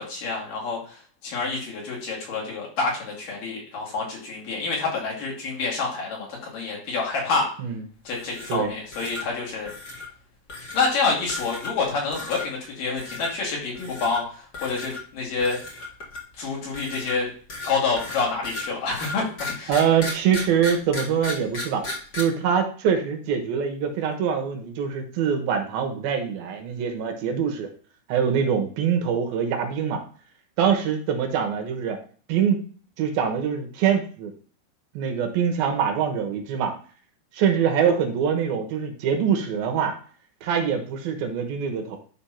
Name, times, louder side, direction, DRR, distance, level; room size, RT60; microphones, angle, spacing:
voice 1, 0.0-7.5 8.1-9.7 10.7-15.6 16.4-17.3 17.6-19.7, left 4 dB, 60° left, -3 dB, 3.9 m, -28 dB
sound 1, 8.1-8.7 8.9-9.2 9.6-10.1 10.5-10.9 11.3-11.8 12.1-12.5 13.0-13.3 13.7-14.2 14.5-15.0 15.4-16.3 16.7-22.2, left 3 dB, 35° left, 1.6 m, -35 dB
voice 2, 19.7-21.8 22.1-27.7 28.1-30.0 30.6-32.0 32.3-32.6 33.0-34.3 34.9-36.7 37.3-39.9 40.4-42.0, right 7 dB, 70° right, 5 dB, 2.9 m, -24 dB
10.5 x 3.5 x 5.8 m, 0.43 s
omnidirectional pair, 4.6 m